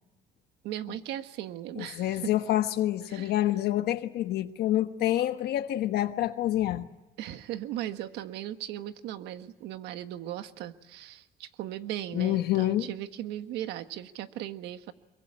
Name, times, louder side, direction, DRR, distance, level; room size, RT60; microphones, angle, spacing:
voice 1, 0.6-2.3 3.1-3.3 7.2-14.9, right 12 dB, 90° right, 1.4 m, -37 dB
voice 2, 1.8-6.9 12.1-12.9, left 13 dB, 75° left, 1.3 m, -27 dB
25.0 x 23.0 x 8.8 m
cardioid pair, 110°, 17 cm